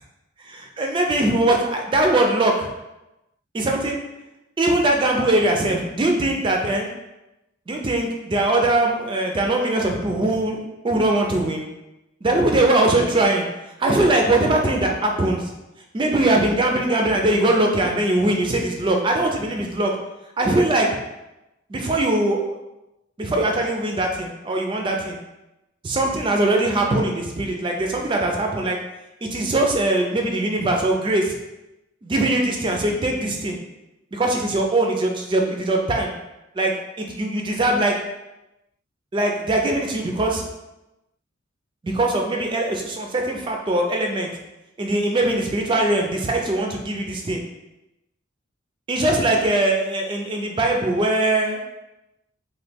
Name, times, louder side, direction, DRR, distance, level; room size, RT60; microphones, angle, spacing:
voice 1, 0.4-2.7 3.5-4.0 4.6-6.9 7.7-10.6 10.8-11.6 12.2-13.5 13.8-15.5 15.9-19.9 20.4-20.9 21.7-22.6 23.2-25.2 25.8-28.8 29.2-31.3 32.0-33.6 34.1-36.1 36.5-37.9 39.1-40.4 41.8-44.3 44.8-47.4 48.9-51.6, right 2 dB, 25° right, 1 dB, 0.3 m, -21 dB
3.0 x 2.2 x 3.3 m, 0.95 s
head